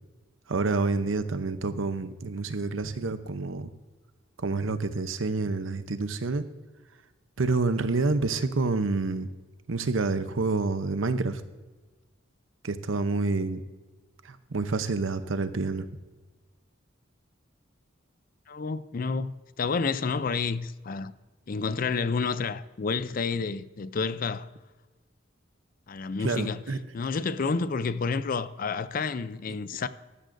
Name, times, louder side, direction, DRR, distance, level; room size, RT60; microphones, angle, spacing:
voice 1, 0.5-3.7 4.4-6.5 7.4-9.3 9.7-11.4 12.6-13.6 14.2-15.9 26.2-26.8, right 3 dB, 80° right, 0.8 m, -28 dB
voice 2, 18.5-21.1 21.5-24.5 25.9-26.6 26.9-29.9, left 4 dB, 45° left, 0.4 m, -30 dB
14.5 x 12.5 x 2.6 m
head